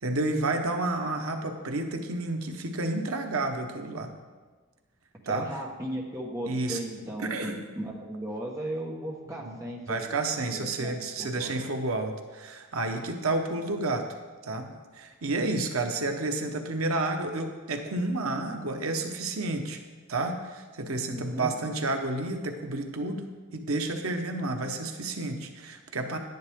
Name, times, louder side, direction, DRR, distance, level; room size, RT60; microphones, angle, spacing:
voice 1, 0.0-4.1 5.3-5.5 6.5-6.8 7.2-7.6 9.4-9.6 9.9-14.1 14.4-19.8 20.1-26.2, right 2 dB, 85° right, 5 dB, 1.0 m, -30 dB
voice 2, 5.3-10.0 10.5-10.9 11.2-11.6 21.1-21.6, right 1 dB, 15° right, -2 dB, 1.3 m, -36 dB
10.5 x 10.5 x 3.6 m, 1.4 s
head